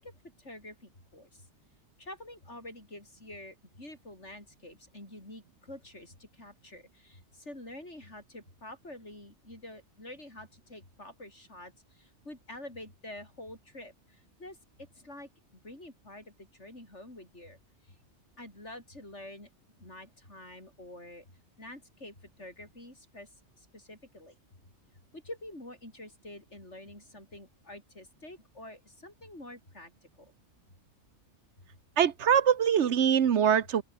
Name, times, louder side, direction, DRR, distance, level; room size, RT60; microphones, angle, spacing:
voice 1, 0.0-1.5 2.0-18.0 18.4-19.5 19.8-21.2 21.6-24.4 25.1-29.9 30.2-30.3, left 1 dB, 85° left, 8.3 m, -48 dB
voice 2, 32.0-33.8, right 8 dB, 80° right, 1.3 m, -23 dB
open air
omnidirectional pair, 1.2 m